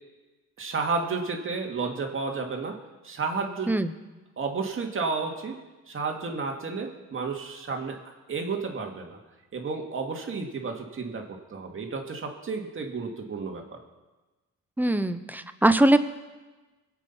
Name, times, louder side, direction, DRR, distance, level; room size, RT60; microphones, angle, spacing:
voice 1, 0.6-2.8 3.0-3.7 4.4-5.5 5.9-8.0 8.3-9.2 9.5-11.2 11.5-13.8, right 4 dB, 45° right, 2 dB, 2.4 m, -31 dB
voice 2, 14.8-16.0, right 1 dB, 5° right, 11 dB, 0.9 m, -21 dB
22.0 x 8.2 x 5.8 m, 1.2 s
cardioid pair, 90°, 30 cm